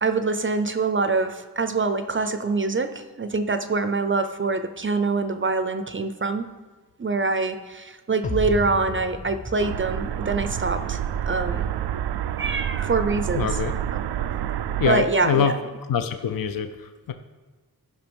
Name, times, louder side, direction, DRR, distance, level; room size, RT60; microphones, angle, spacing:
voice 1, 0.0-6.5 7.0-11.0 11.3-11.7 12.4-13.6 14.9-15.5, right 3 dB, 30° right, 9 dB, 0.5 m, -25 dB
sound 1, 8.2-11.5, left 2 dB, 20° left, 0.4 m, -34 dB
sound 2, 9.6-14.9, right 10 dB, 85° right, 0.5 m, -28 dB
voice 2, 13.3-13.7 14.8-15.5 15.9-17.1, left 7 dB, 60° left, 8 dB, 0.6 m, -24 dB
14.0 x 5.6 x 5.3 m, 1.3 s
wide cardioid pair, 145°, 38 cm